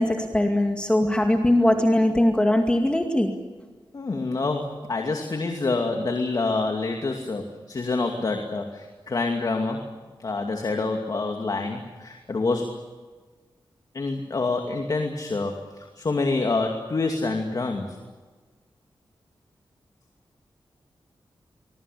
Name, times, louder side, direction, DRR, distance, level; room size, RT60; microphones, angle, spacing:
voice 1, 0.0-3.3, left 1 dB, 10° left, 3 dB, 2.3 m, -21 dB
voice 2, 3.9-9.9 10.2-12.8 13.9-18.0, left 3 dB, 45° left, 3 dB, 2.5 m, -27 dB
24.5 x 22.0 x 8.6 m, 1.3 s
wide cardioid pair, 110°, 9 cm